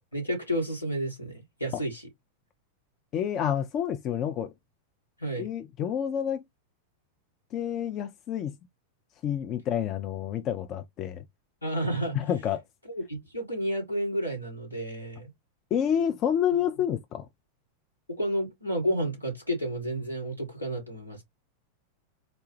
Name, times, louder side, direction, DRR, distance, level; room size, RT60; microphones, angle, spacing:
voice 1, 0.1-2.0 5.2-5.5 11.6-12.2 12.9-15.3 18.1-21.2, right 1 dB, 85° left, 1.7 m, -31 dB
voice 2, 3.1-4.5 5.4-6.4 7.5-8.5 9.2-11.2 12.1-12.6 15.7-17.3, left 9 dB, 35° left, 0.4 m, -28 dB
4.0 x 2.2 x 3.1 m
figure-of-eight pair, 90°, 0 cm